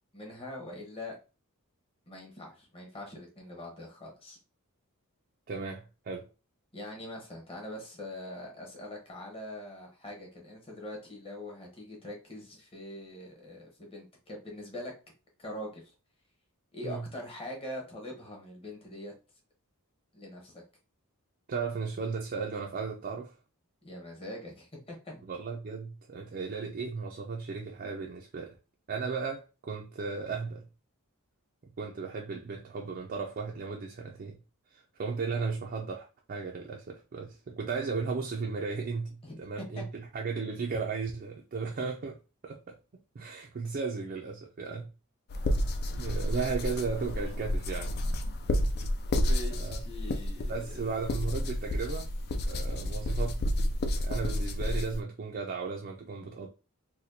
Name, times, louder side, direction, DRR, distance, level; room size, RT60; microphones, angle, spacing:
voice 1, 0.1-1.1 2.1-4.4 6.7-14.9 15.4-15.9 16.7-19.1 20.1-20.6 23.8-25.2 39.2-39.8 49.2-50.8, left 1 dB, 25° left, 1.0 m, -43 dB
voice 2, 5.5-6.3 16.8-17.0 21.5-23.3 25.3-28.6 28.9-30.6 31.8-34.4 34.7-42.7 43.1-44.9 46.0-48.0 49.5-49.8 50.5-52.1 52.5-53.4 53.9-56.5, right 4 dB, 40° right, 0.4 m, -35 dB
sound 1, 45.3-55.0, left 1 dB, 45° left, 0.4 m, -30 dB
4.2 x 2.2 x 2.7 m
head